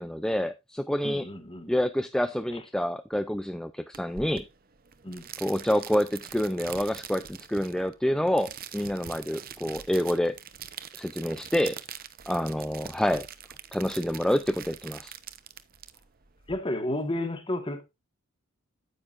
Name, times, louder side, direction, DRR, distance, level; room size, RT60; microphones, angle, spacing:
voice 1, 0.0-1.3 1.7-4.5 5.4-10.3 10.9-11.8 12.3-13.3 13.7-15.1, equal, 5° left, 0.4 m, -27 dB
voice 2, 1.0-1.7 2.5-2.6 5.0-5.3 16.5-17.8, left 1 dB, 25° left, 1.5 m, -32 dB
sound 1, 3.9-16.6, right 9 dB, 45° right, 0.8 m, -44 dB
9.7 x 9.2 x 2.5 m
head